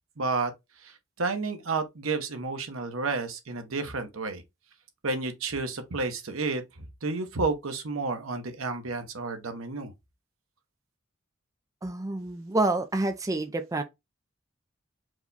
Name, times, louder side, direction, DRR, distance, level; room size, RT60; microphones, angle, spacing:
voice 1, 0.2-0.5 0.8-4.4 5.0-6.6 7.0-9.9, right 3 dB, 85° right, 0.9 m, -31 dB
voice 2, 11.8-13.8, right 2 dB, 15° right, 0.4 m, -28 dB
4.8 x 2.2 x 3.9 m
head